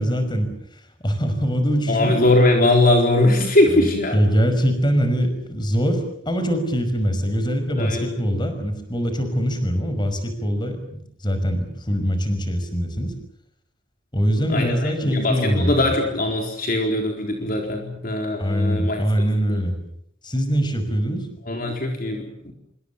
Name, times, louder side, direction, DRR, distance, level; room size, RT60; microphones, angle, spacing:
voice 1, 0.0-2.2 3.7-13.1 14.1-15.9 18.4-19.8 20.2-21.3, equal, 25° left, 8 dB, 5.6 m, -23 dB
voice 2, 1.9-4.2 7.8-8.1 14.5-19.0 19.5-19.6 21.5-22.5, left 2 dB, 50° left, 2 dB, 4.2 m, -20 dB
27.5 x 25.0 x 7.1 m, 0.69 s
head